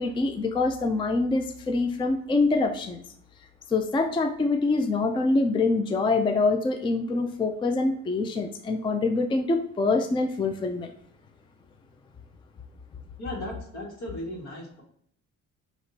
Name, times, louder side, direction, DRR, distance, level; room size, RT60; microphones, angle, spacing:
voice 1, 0.0-3.0 3.7-10.9, left 3 dB, 15° left, 7 dB, 0.4 m, -25 dB
voice 2, 13.2-14.8, left 1 dB, 65° left, -1 dB, 1.8 m, -36 dB
6.0 x 2.9 x 2.7 m, 0.65 s
cardioid pair, 105°, 29 cm